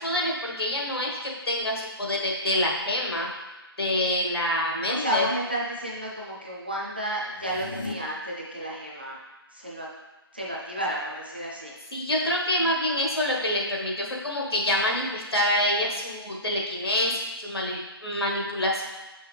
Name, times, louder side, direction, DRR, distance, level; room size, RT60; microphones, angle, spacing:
voice 1, 0.0-3.3 3.8-5.3 11.9-18.8, left 1 dB, 70° left, -2 dB, 1.5 m, -26 dB
voice 2, 4.9-9.2 9.5-9.9 10.3-11.7, right 1 dB, 25° right, -4 dB, 0.6 m, -31 dB
sound 1, 7.3-7.9, left 3 dB, 50° left, 0.6 m, -36 dB
5.9 x 5.5 x 3.3 m, 1.1 s
figure-of-eight pair, 180°, 13 cm